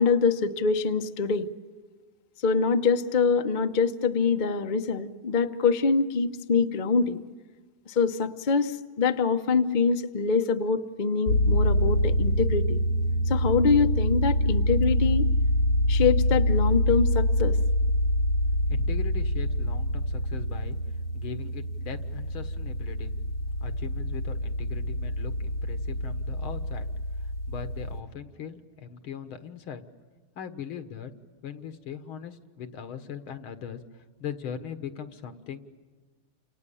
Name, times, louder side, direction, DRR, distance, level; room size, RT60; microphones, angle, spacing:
voice 1, 0.0-1.5 2.4-7.2 7.9-12.8 13.3-15.3 15.9-17.6, left 5 dB, 35° left, 7 dB, 0.7 m, -24 dB
sound 1, 11.3-28.0, equal, 70° left, 2.5 m, -26 dB
voice 2, 18.7-20.8 21.1-23.1 23.6-26.9 27.5-29.8 30.4-31.1 31.4-33.8 34.2-35.6, left 8 dB, 85° left, 9 dB, 2.2 m, -39 dB
30.0 x 27.5 x 7.1 m, 1.4 s
omnidirectional pair, 2.3 m